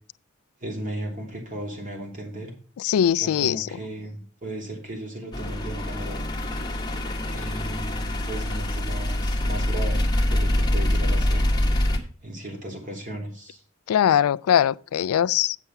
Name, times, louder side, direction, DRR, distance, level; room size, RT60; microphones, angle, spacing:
voice 1, 0.6-2.5 3.2-6.2 7.3-11.5 12.2-13.6, right 1 dB, 35° right, 2.9 m, -36 dB
voice 2, 2.8-3.7 13.9-15.6, left 9 dB, 85° left, 0.3 m, -21 dB
sound 1, 5.3-12.0, left 1 dB, 20° left, 1.1 m, -25 dB
8.2 x 6.7 x 5.8 m
head